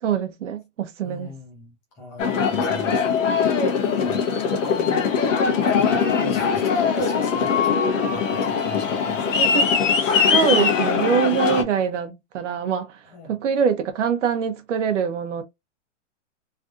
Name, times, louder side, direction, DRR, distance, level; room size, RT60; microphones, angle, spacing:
voice 1, 0.0-1.3 9.4-13.0 13.3-15.4, right 7 dB, 75° right, 0.8 m, -24 dB
voice 2, 1.0-3.0 3.8-5.1 5.5-9.2 11.4-11.6 13.1-13.4, left 3 dB, 10° left, 0.5 m, -36 dB
Aircraft, 2.2-11.6, left 6 dB, 85° left, 1.1 m, -21 dB
3.3 x 2.5 x 2.4 m
hypercardioid pair, 170°, 37 cm